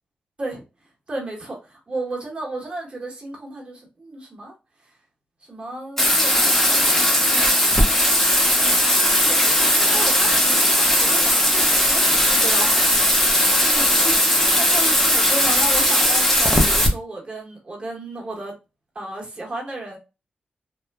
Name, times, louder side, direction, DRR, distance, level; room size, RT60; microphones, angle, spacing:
voice 1, 1.1-4.5 5.4-18.5 18.9-20.0, right 2 dB, 35° right, 1.0 m, -34 dB
Bathtub (filling or washing), 6.0-16.9, left 1 dB, 10° left, 0.6 m, -18 dB
3.0 x 2.1 x 2.2 m
wide cardioid pair, 115°, 3 cm